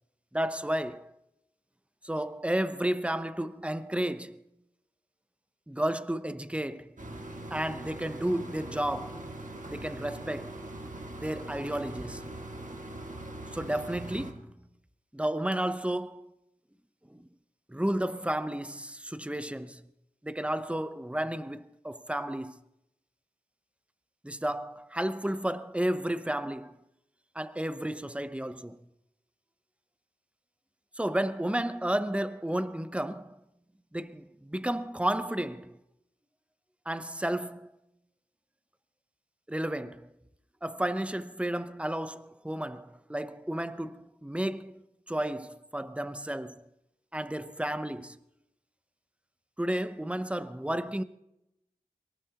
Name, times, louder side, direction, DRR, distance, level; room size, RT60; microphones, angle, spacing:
voice 1, 0.3-1.1 2.0-4.4 5.7-7.0 7.5-9.2 9.7-10.5 11.1-12.3 13.5-14.5 15.1-16.3 17.1-17.3 17.7-19.8 20.2-22.6 24.2-26.8 27.4-28.8 31.0-33.4 33.9-35.8 36.9-37.7 39.5-40.1 40.6-44.8 45.1-46.6 47.1-48.2 49.6-51.0, right 1 dB, 10° right, 0.7 m, -32 dB
sound 1, 7.0-14.3, right 1 dB, 55° right, 1.7 m, -41 dB
22.5 x 18.5 x 2.9 m
wide cardioid pair, 50°, 16 cm